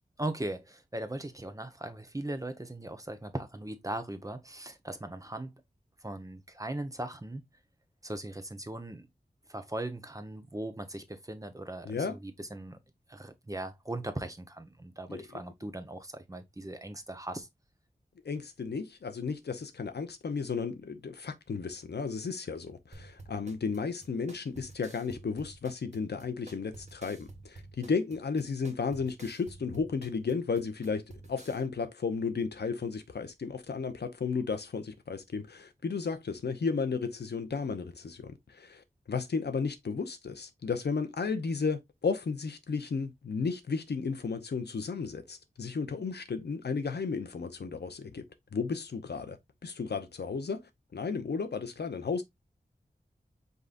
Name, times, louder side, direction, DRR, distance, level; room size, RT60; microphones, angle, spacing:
voice 1, 0.2-5.6 6.0-7.4 8.0-9.1 9.5-12.8 13.1-17.5, right 1 dB, 20° right, 1.0 m, -39 dB
voice 2, 11.9-12.2 15.1-15.2 18.2-31.0 31.3-48.2 48.5-49.4 49.6-50.6 50.9-52.2, left 5 dB, 85° left, 0.8 m, -33 dB
sound 1, 22.9-31.6, right 2 dB, 45° right, 1.4 m, -51 dB
5.3 x 3.9 x 2.5 m
wide cardioid pair, 60°, 17 cm